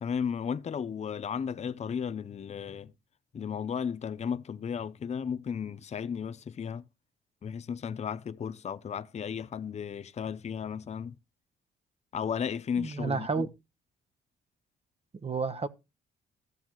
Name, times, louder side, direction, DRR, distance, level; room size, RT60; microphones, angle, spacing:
voice 1, 0.0-2.9 3.3-6.9 7.4-11.2 12.1-13.5, left 7 dB, 35° left, 0.6 m, -34 dB
voice 2, 12.8-13.5 15.2-15.7, right 4 dB, 30° right, 1.0 m, -30 dB
14.5 x 7.2 x 3.0 m
cardioid pair, 90°, 20 cm